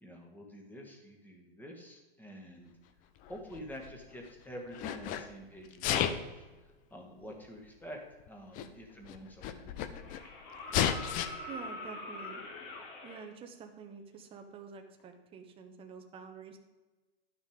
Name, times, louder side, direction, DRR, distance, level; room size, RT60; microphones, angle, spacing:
voice 1, 0.0-2.7 3.3-6.4 6.9-8.0 8.3-10.2, equal, 5° left, 1 dB, 1.8 m, -48 dB
Sneeze, 3.2-4.3 4.7-5.2 5.7-6.3 7.3-7.4 8.3-8.4 8.5-8.7 9.0-10.2 10.7-11.3, left 10 dB, 25° left, 0.6 m, -32 dB
sound 1, 8.9-9.0 10.0-13.2 15.0-15.1, left 2 dB, 50° left, 3.0 m, -43 dB
voice 2, 11.5-12.4 13.0-16.6, right 5 dB, 15° right, 5 dB, 1.0 m, -48 dB
11.5 x 6.4 x 5.1 m, 1.2 s
hypercardioid pair, 140°, 31 cm